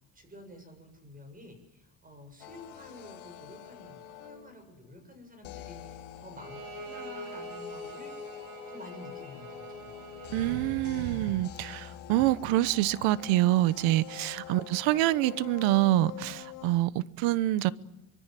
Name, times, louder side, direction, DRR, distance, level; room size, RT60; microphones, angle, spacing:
voice 1, 0.1-8.1 8.7-10.0, left 1 dB, 20° right, 7.2 m, -50 dB
sound 1, 2.4-4.7 5.4-16.8, left 13 dB, 85° left, 2.8 m, -46 dB
Bowed string instrument, 6.4-10.6, equal, 50° right, 5.6 m, -43 dB
voice 2, 10.3-17.7, right 16 dB, 85° right, 1.1 m, -26 dB
24.5 x 23.0 x 7.6 m
cardioid pair, 130°, 45 cm